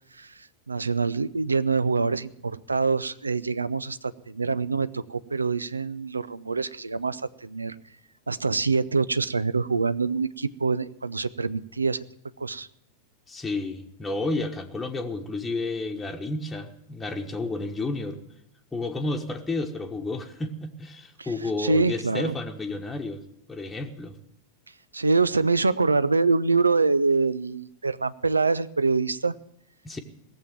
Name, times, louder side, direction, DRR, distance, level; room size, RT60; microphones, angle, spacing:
voice 1, 0.1-7.8 8.3-12.0 12.4-12.7 21.2-21.3 21.6-22.3 24.9-29.3, right 4 dB, 80° right, 17 dB, 0.5 m, -25 dB
voice 2, 13.3-18.2 18.7-23.2 23.5-24.2 29.8-30.0, left 2 dB, 10° left, 1 dB, 1.2 m, -31 dB
17.5 x 7.4 x 9.1 m, 0.76 s
figure-of-eight pair, 90°, 0 cm